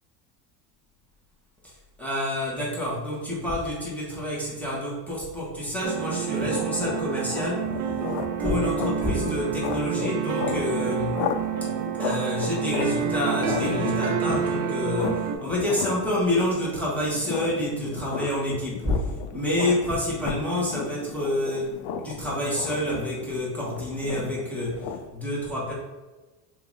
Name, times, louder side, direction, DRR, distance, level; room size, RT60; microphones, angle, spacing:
voice 1, 1.6-7.9 8.4-11.2 12.0-25.7, left 1 dB, 5° left, -7 dB, 1.4 m, -28 dB
sound 1, 5.8-15.4, right 9 dB, 40° right, 0.4 m, -29 dB
sound 2, 6.0-25.1, left 7 dB, 65° left, 0.6 m, -35 dB
2.9 x 2.9 x 3.9 m, 1.2 s
supercardioid pair, 100°, 50 cm